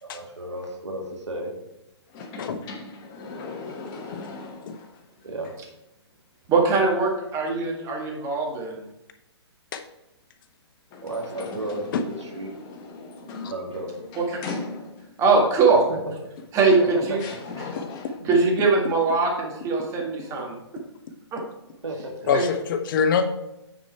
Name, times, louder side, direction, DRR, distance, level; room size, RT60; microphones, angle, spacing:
voice 1, 0.0-1.5 5.2-5.5 11.0-12.5 13.5-13.9 15.9-16.0 16.8-17.0 21.8-22.1, right 1 dB, 85° right, 1 dB, 2.1 m, -33 dB
sound 1, 2.1-5.0 5.4-5.5 10.9-15.2 16.4-16.5 17.2-18.3, left 3 dB, 25° left, 1.1 m, -38 dB
voice 2, 6.5-8.8 14.2-14.4 15.2-15.9 16.5-17.2 17.6-17.7 18.3-20.5 21.3-21.4 22.3-22.4, right 4 dB, 20° right, -1 dB, 1.9 m, -21 dB
voice 3, 17.8-18.1 22.3-23.3, left 6 dB, 50° left, 7 dB, 0.8 m, -25 dB
9.2 x 4.5 x 4.5 m, 0.90 s
hypercardioid pair, 130°, 14 cm